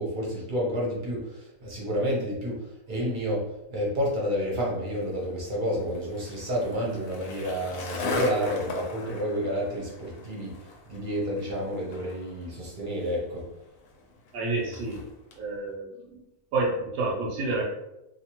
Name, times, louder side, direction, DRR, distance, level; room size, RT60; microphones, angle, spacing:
voice 1, 0.0-3.4 3.7-13.4, equal, 40° right, -4 dB, 0.8 m, -30 dB
Skateboard, 4.9-15.4, left 3 dB, 70° left, 1.0 m, -39 dB
voice 2, 14.3-15.0 15.4-16.2 16.5-17.6, right 3 dB, 85° right, -3 dB, 1.2 m, -29 dB
2.7 x 2.4 x 2.9 m, 0.89 s
omnidirectional pair, 1.6 m